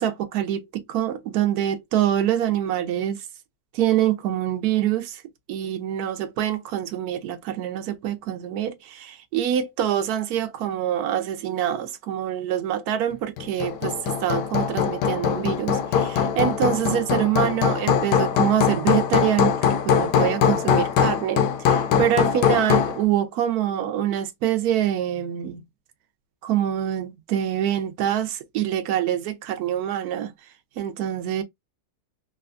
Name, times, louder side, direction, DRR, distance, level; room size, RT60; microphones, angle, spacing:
voice 1, 0.0-3.2 3.7-5.2 5.5-19.5 19.8-25.6 26.4-30.3 30.8-31.4, right 10 dB, 70° right, 1.0 m, -25 dB
Hammer, 13.4-23.0, left 8 dB, 80° left, 1.2 m, -22 dB
3.3 x 2.2 x 2.4 m
omnidirectional pair, 1.8 m